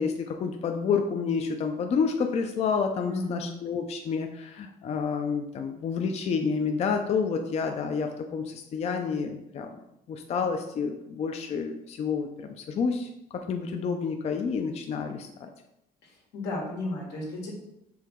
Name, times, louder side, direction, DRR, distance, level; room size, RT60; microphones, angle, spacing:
voice 1, 0.0-9.7 10.1-15.5, left 5 dB, 40° left, 5 dB, 0.4 m, -29 dB
voice 2, 3.0-3.6 16.0-17.5, left 2 dB, 90° left, -3 dB, 1.6 m, -34 dB
4.6 x 3.0 x 3.6 m, 0.83 s
cardioid pair, 110°, 17 cm